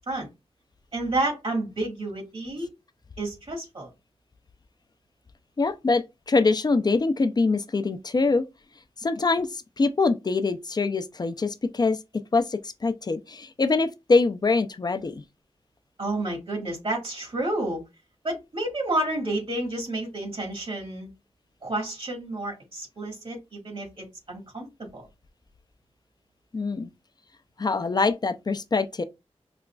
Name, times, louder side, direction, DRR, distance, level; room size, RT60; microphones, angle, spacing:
voice 1, 0.9-2.7 3.2-3.9 16.0-17.8 18.2-21.1 21.6-25.1, right 2 dB, 60° right, 1.6 m, -30 dB
voice 2, 5.6-8.4 9.0-12.0 12.3-15.2 26.5-26.9 27.6-29.0, left 3 dB, 40° left, 0.4 m, -24 dB
4.9 x 2.3 x 2.2 m
wide cardioid pair, 85°, 11 cm